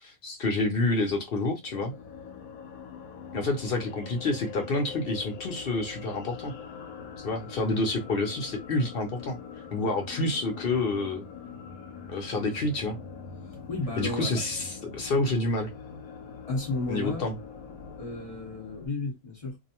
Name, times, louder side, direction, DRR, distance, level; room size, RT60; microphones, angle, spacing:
voice 1, 0.0-1.9 3.3-6.5 7.2-9.4 9.7-11.2 12.1-13.0 14.0-15.7 16.9-17.3, left 2 dB, 55° left, 0.7 m, -28 dB
sound 1, 1.6-18.9, left 6 dB, 80° left, 1.0 m, -43 dB
voice 2, 13.7-14.3 16.5-17.3 18.0-19.6, left 2 dB, 25° left, 1.0 m, -33 dB
2.6 x 2.1 x 2.8 m
omnidirectional pair, 1.5 m